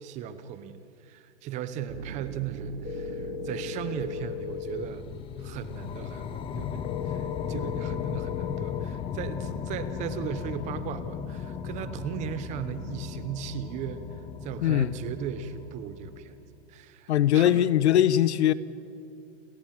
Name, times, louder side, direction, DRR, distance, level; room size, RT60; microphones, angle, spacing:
voice 1, 0.0-14.0 14.4-16.4 16.7-17.7, right 8 dB, 20° right, 0.7 m, -37 dB
sound 1, 1.9-5.8, right 10 dB, 70° right, 1.0 m, -42 dB
sound 2, 2.8-4.9 6.8-8.9, left 13 dB, 55° left, 0.5 m, -37 dB
sound 3, 4.0-16.5, left 7 dB, 15° left, 0.8 m, -36 dB
voice 2, 14.6-14.9 17.1-18.5, left 11 dB, 75° left, 1.0 m, -21 dB
29.5 x 14.0 x 7.4 m
supercardioid pair, 160°, 34 cm